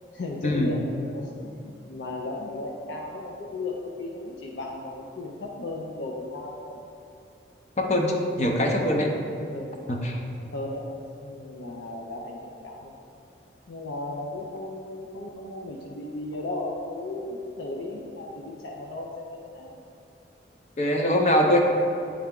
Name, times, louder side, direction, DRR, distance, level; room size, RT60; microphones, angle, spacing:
voice 1, 0.1-6.8 9.4-9.8 10.4-10.9 11.2-13.0 13.7-19.7, left 2 dB, 80° left, -1 dB, 0.5 m, -35 dB
voice 2, 7.8-9.1 9.9-10.2 20.8-21.6, left 1 dB, 40° left, 1 dB, 0.6 m, -23 dB
8.7 x 3.4 x 3.6 m, 2.6 s
head